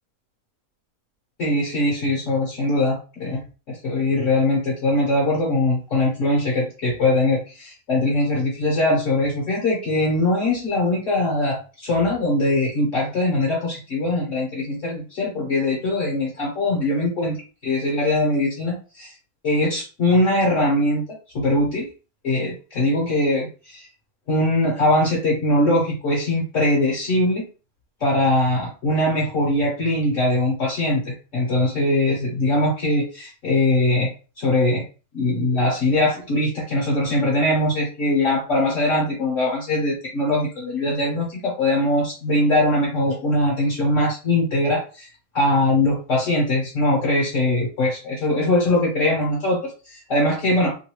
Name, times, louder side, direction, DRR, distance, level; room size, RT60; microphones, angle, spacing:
voice 1, 1.4-3.4 3.7-17.4 17.6-19.1 19.4-21.0 21.3-21.9 22.2-23.9 24.3-27.4 28.0-34.1 34.4-34.8 35.1-45.1 45.3-50.7, left 1 dB, 55° left, -3 dB, 1.3 m, -21 dB
3.1 x 2.6 x 3.0 m, 0.34 s
omnidirectional pair, 1.7 m